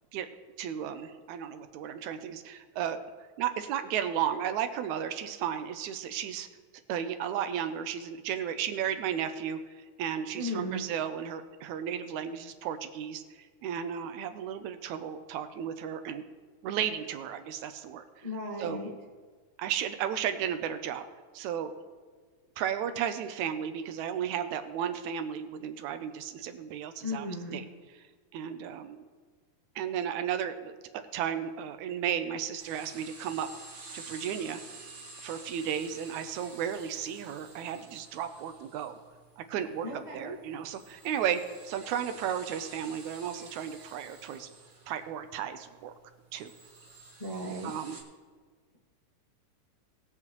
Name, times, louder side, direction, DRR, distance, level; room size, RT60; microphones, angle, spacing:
voice 1, 0.6-3.0 3.4-6.5 6.9-16.2 16.6-18.0 18.6-18.8 19.6-21.1 21.3-21.7 22.6-27.3 27.5-27.6 28.3-29.0 29.8-33.5 33.9-34.6 35.2-39.0 39.4-44.5 44.9-45.9 46.3-46.5 47.6-48.0, right 9 dB, 80° right, 9 dB, 2.0 m, -34 dB
voice 2, 10.3-10.8 18.2-18.9 27.0-27.6 39.8-40.4 47.2-47.7, left 1 dB, 25° left, -4 dB, 0.9 m, -36 dB
sound 1, 32.6-48.0, right 3 dB, 30° right, 1.5 m, -51 dB
20.0 x 7.7 x 3.0 m, 1.5 s
omnidirectional pair, 3.4 m